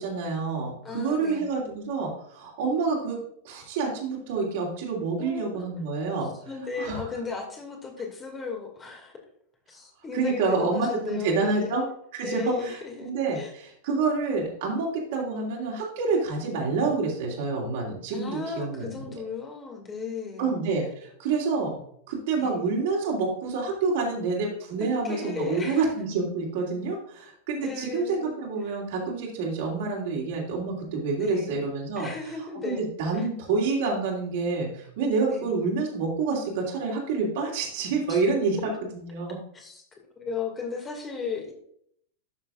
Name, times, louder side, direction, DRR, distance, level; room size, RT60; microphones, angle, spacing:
voice 1, 0.0-3.2 3.4-6.3 6.8-7.0 10.1-11.8 12.1-19.0 20.4-21.8 22.1-32.1 32.6-39.4, right 4 dB, 55° right, -2 dB, 2.9 m, -28 dB
voice 2, 0.8-1.5 5.2-5.6 6.5-9.1 9.7-11.8 12.2-13.5 18.1-20.5 22.4-22.6 24.1-24.2 24.8-25.9 27.6-28.4 28.7-28.8 31.2-31.7 32.0-32.8 33.1-33.3 35.3-35.5 38.1-38.2 39.5-39.8 40.2-41.5, left 5 dB, 20° left, 2 dB, 2.2 m, -35 dB
12.0 x 6.7 x 2.5 m, 0.67 s
figure-of-eight pair, 90°, 0 cm